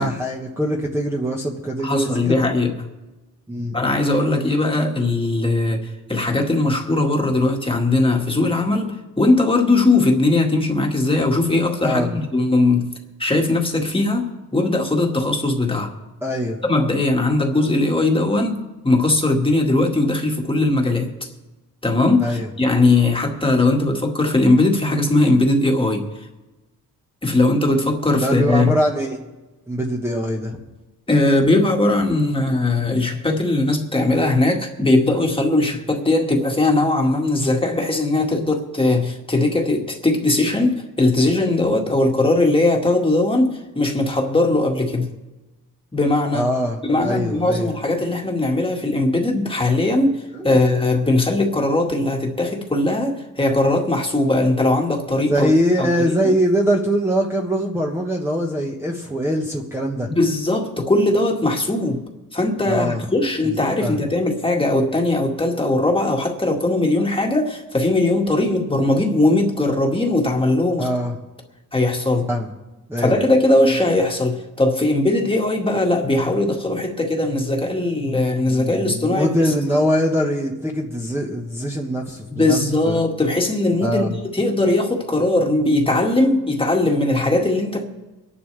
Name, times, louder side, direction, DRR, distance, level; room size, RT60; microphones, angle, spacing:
voice 1, 0.0-2.4 3.5-3.8 11.8-12.2 16.2-16.6 22.2-22.5 28.2-29.2 29.7-30.6 46.3-47.7 50.3-50.6 55.3-60.1 62.7-63.0 63.4-64.0 70.8-71.2 72.3-72.5 72.9-73.2 78.5-82.6 82.8-83.0 83.8-84.1, equal, 5° right, -1 dB, 1.4 m, -22 dB
voice 2, 1.8-2.9 3.7-12.9 13.2-15.9 16.6-21.1 21.8-26.1 27.2-28.7 31.1-45.1 45.9-46.5 46.8-55.5 55.8-56.3 60.1-62.0 62.3-70.9 71.7-72.3 73.0-79.6 82.3-87.9, left 2 dB, 15° left, 1 dB, 1.9 m, -19 dB
25.0 x 11.0 x 3.4 m, 1.1 s
cardioid pair, 110°, 35 cm